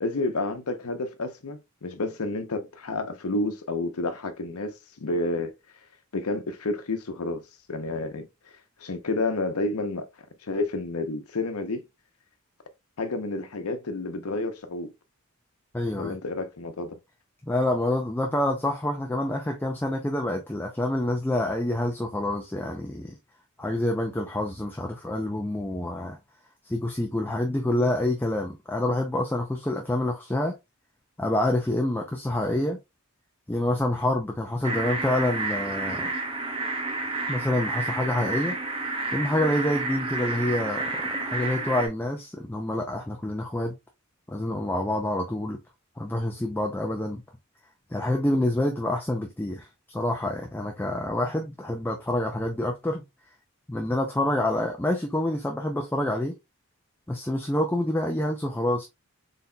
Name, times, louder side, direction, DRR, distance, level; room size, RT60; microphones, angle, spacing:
voice 1, 0.0-4.7 5.0-5.5 6.1-7.4 7.7-8.3 8.8-10.1 10.4-11.8 13.0-14.9 16.0-17.0, left 2 dB, 85° left, 0.8 m, -30 dB
voice 2, 15.7-16.2 17.4-23.1 23.6-26.2 26.6-30.5 31.2-32.8 33.5-36.1 37.3-38.6 39.1-43.7 44.3-45.6 46.0-47.2 47.9-53.0 53.7-56.3 57.1-58.9, left 1 dB, 10° left, 0.4 m, -27 dB
sound 1, 34.6-41.9, right 3 dB, 25° right, 0.7 m, -30 dB
4.1 x 3.9 x 2.2 m
head